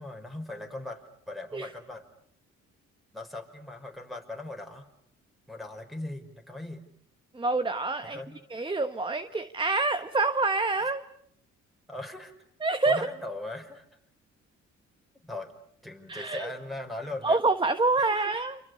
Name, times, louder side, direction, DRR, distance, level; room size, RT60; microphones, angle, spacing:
voice 1, 0.0-2.0 3.1-4.9 5.5-6.8 8.0-8.4 11.9-12.3 12.9-13.9 15.2-15.5 15.8-17.4 18.0-18.4, left 2 dB, ahead, 6 dB, 5.6 m, -39 dB
voice 2, 7.3-8.2 8.5-11.0 12.6-13.0 16.1-16.5 17.2-18.6, right 3 dB, 15° right, 11 dB, 1.3 m, -26 dB
28.5 x 27.0 x 6.8 m, 0.67 s
cardioid pair, 90°, 30 cm